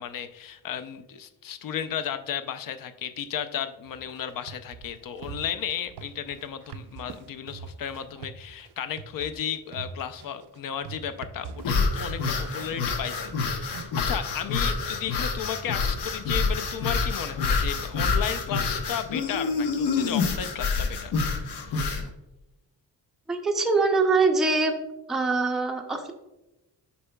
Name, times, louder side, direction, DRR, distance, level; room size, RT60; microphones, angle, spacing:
voice 1, 0.0-21.1 21.4-21.8, left 9 dB, 60° left, 11 dB, 0.5 m, -34 dB
sound 1, 3.9-13.8, right 6 dB, 85° right, 0.5 m, -43 dB
sound 2, 11.6-22.1, left 4 dB, 85° left, 0.9 m, -27 dB
voice 2, 23.3-24.7 25.1-26.1, right 3 dB, ahead, 2 dB, 0.4 m, -23 dB
8.3 x 5.5 x 2.2 m, 0.97 s
wide cardioid pair, 160°, 39 cm